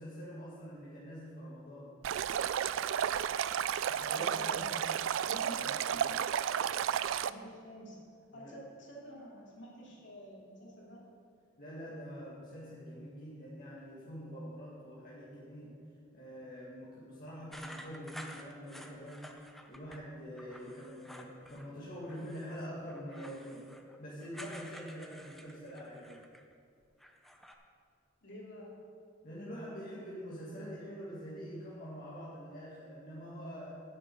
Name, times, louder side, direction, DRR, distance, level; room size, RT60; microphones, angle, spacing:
voice 1, 0.0-1.9 3.6-4.8 5.5-5.7 8.3-8.5 11.6-15.8 16.1-19.2 19.7-23.7 24.0-26.2 29.2-33.8, equal, 50° left, -8 dB, 1.9 m, -45 dB
Stream, 2.0-7.3, right 9 dB, 80° right, 0.3 m, -32 dB
voice 2, 4.1-4.6 5.2-6.0 7.3-8.0 8.3-11.1 28.2-28.7, equal, 65° left, -4 dB, 2.8 m, -49 dB
sound 1, 17.5-20.0 20.4-21.7 22.0-26.5 26.8-27.5, equal, ahead, 0.6 m, -51 dB
8.1 x 6.5 x 8.4 m, 2.2 s
head